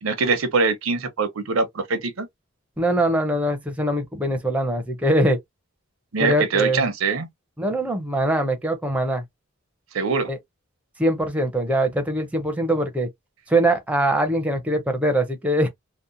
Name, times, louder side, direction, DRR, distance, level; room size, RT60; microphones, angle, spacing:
voice 1, 0.0-2.3 6.1-7.3 9.9-10.3, right 4 dB, 80° right, 0.6 m, -23 dB
voice 2, 2.8-5.4 6.2-6.8 7.6-9.2 10.3-10.4 11.0-13.1 13.5-15.7, right 1 dB, 5° right, 0.5 m, -22 dB
2.8 x 2.1 x 2.4 m
head